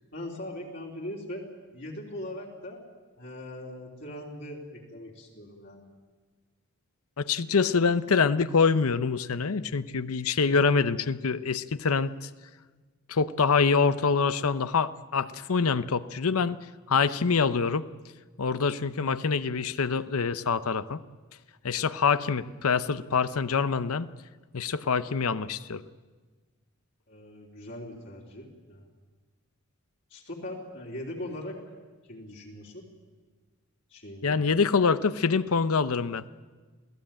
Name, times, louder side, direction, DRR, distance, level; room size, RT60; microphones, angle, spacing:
voice 1, 0.1-1.5 1.7-2.8 3.2-5.9 27.1-28.8 30.1-31.6 32.1-32.9 33.9-34.4, left 1 dB, 50° left, -3 dB, 3.5 m, -40 dB
voice 2, 7.2-12.3 13.1-16.6 16.9-17.9 18.4-21.0 21.6-24.1 24.5-25.8 34.2-36.2, left 5 dB, 80° left, 14 dB, 0.7 m, -25 dB
27.5 x 17.0 x 8.8 m, 1.4 s
head